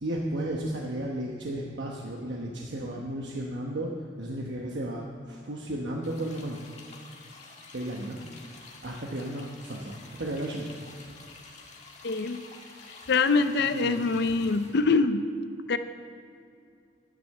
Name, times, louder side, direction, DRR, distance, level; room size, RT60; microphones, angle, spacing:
voice 1, 0.0-3.9 4.2-6.6 7.7-8.2 8.8-10.7 13.6-14.0, right 1 dB, 65° right, -1 dB, 1.1 m, -34 dB
sound 1, 6.0-14.8, left 3 dB, 35° left, 1.7 m, -49 dB
voice 2, 12.0-12.4 13.1-15.2 15.7-15.8, left 4 dB, 60° left, 10 dB, 0.5 m, -24 dB
10.5 x 10.0 x 6.6 m, 2.3 s
head